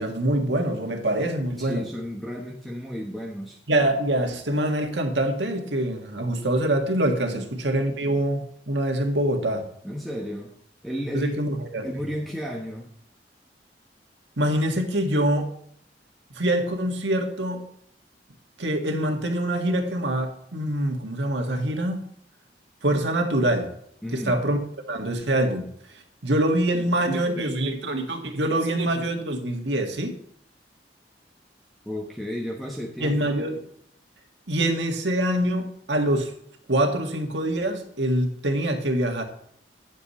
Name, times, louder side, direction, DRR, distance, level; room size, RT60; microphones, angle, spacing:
voice 1, 0.0-1.8 3.7-9.6 11.1-11.8 14.4-15.5 16.3-17.7 18.6-22.0 22.8-23.7 24.1-24.6 24.9-25.6 25.9-30.1 33.0-33.6 34.5-36.3 36.7-39.2, right 1 dB, 90° right, 4 dB, 1.7 m, -25 dB
voice 2, 1.6-3.6 7.3-7.4 9.8-10.5 10.8-11.4 11.8-12.9 24.0-24.4 31.8-33.2, equal, ahead, -1 dB, 1.0 m, -33 dB
9.8 x 7.4 x 4.2 m, 0.67 s
head